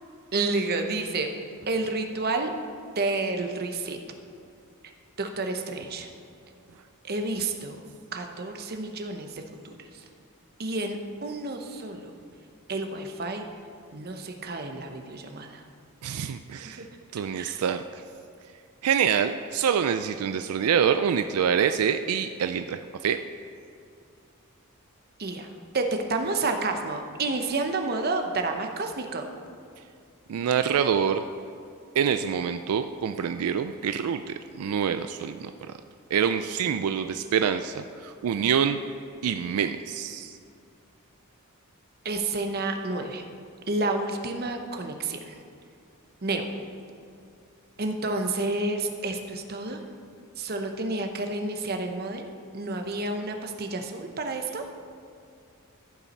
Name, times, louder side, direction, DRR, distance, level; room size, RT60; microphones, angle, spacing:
voice 1, 0.3-1.3 1.7-2.5 3.0-4.0 5.2-6.1 7.0-7.8 8.1-9.8 10.6-12.1 12.7-13.4 13.9-15.6 17.4-17.6 25.2-25.5 25.7-29.3 42.0-43.2 43.7-45.3 46.2-46.5 47.8-49.8 50.4-54.6, right 2 dB, 45° right, 5 dB, 0.8 m, -30 dB
voice 2, 16.0-16.8 17.1-17.8 18.8-23.2 30.3-31.2 32.0-35.5 36.1-38.8 39.2-40.4, right 7 dB, 80° right, 9 dB, 0.4 m, -26 dB
14.5 x 5.7 x 4.2 m, 2.4 s
head